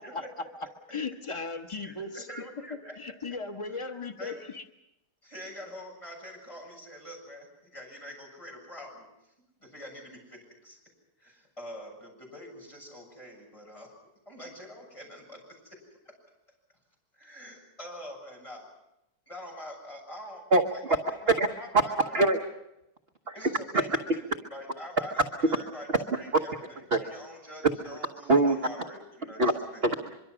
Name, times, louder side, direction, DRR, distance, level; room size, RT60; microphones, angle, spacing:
voice 1, 0.9-2.2 3.0-4.6, left 4 dB, 50° left, 5 dB, 0.3 m, -36 dB
voice 2, 1.8-2.9 3.7-3.8 4.2-4.4 5.2-9.3 9.6-10.8 11.2-13.9 14.3-15.8 16.0-16.1 17.1-18.7 19.3-20.5 20.9-21.9 23.3-24.2 24.5-25.9 26.1-29.8, equal, 15° left, -1 dB, 7.3 m, -45 dB
voice 3, 20.5-21.0 21.3-21.5 21.7-22.4 23.3-23.8 25.2-25.3 26.9-27.0 27.6-27.7 28.3-28.9 29.4-29.5 29.8-30.2, right 2 dB, 40° right, 4 dB, 1.0 m, -24 dB
24.0 x 23.5 x 6.2 m, 0.88 s
omnidirectional pair, 2.3 m